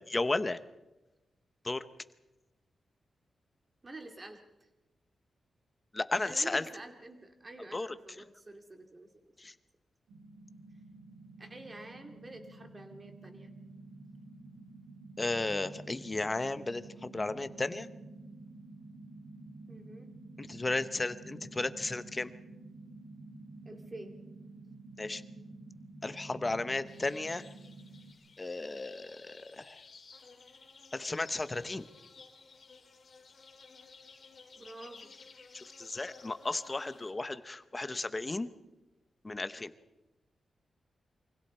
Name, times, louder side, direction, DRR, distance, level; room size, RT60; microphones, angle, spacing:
voice 1, 0.1-0.6 1.6-1.8 5.9-6.6 7.7-7.9 9.4-9.5 15.2-17.9 20.4-22.3 25.0-25.2 26.0-27.4 28.4-29.8 30.9-31.9 35.5-38.5 39.2-39.7, left 2 dB, 20° left, 12 dB, 0.9 m, -34 dB
voice 2, 3.8-4.7 6.2-9.1 11.4-13.5 19.7-20.2 23.7-24.1 34.6-35.1, right 2 dB, 25° right, 4 dB, 2.5 m, -48 dB
sound 1, 10.1-28.1, right 2 dB, 90° right, 4.5 m, -50 dB
sound 2, 26.9-37.1, left 4 dB, 45° left, 3.2 m, -55 dB
28.5 x 24.5 x 4.4 m, 1.0 s
wide cardioid pair, 165°, 0 cm